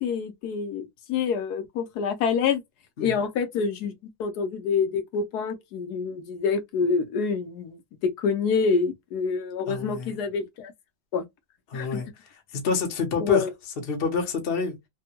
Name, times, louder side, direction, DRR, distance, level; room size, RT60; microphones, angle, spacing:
voice 1, 0.0-2.6 3.0-3.9 4.2-10.7 11.1-11.2 11.7-12.0 13.2-13.5, left 5 dB, 65° left, 1.0 m, -27 dB
voice 2, 9.7-10.2 11.7-13.5 13.8-14.8, left 5 dB, 45° left, 0.8 m, -28 dB
3.4 x 2.2 x 2.8 m
omnidirectional pair, 2.2 m